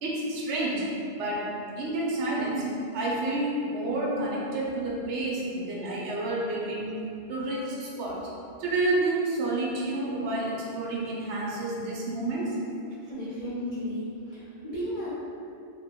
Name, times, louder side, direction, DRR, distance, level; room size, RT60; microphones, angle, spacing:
voice 1, 0.0-0.9 1.2-7.0 7.3-8.3 8.6-12.6, right 2 dB, 80° right, -4 dB, 0.9 m, -29 dB
voice 2, 13.1-15.1, equal, 45° left, -11 dB, 0.5 m, -34 dB
2.2 x 2.1 x 3.4 m, 2.6 s
omnidirectional pair, 1.2 m